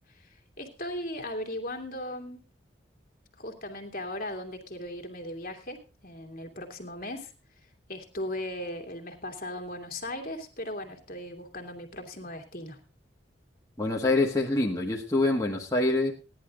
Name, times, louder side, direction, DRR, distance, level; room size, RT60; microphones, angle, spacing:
voice 1, 0.6-2.4 3.4-7.3 7.9-12.8, left 1 dB, 50° left, 3 dB, 2.4 m, -37 dB
voice 2, 13.8-16.1, left 2 dB, 20° left, -3 dB, 1.6 m, -25 dB
16.5 x 11.0 x 3.8 m, 0.31 s
head